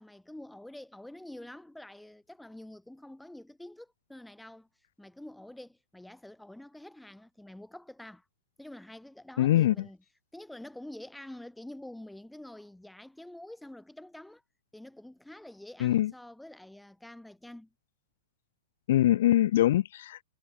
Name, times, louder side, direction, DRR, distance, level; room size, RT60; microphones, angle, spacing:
voice 1, 0.0-4.7 5.0-8.2 8.6-10.0 10.3-14.4 14.7-17.7, left 1 dB, ahead, 5.2 m, -47 dB
voice 2, 9.4-9.7 15.8-16.1 18.9-20.2, left 13 dB, 60° left, 1.1 m, -23 dB
supercardioid pair, 170°, 0 cm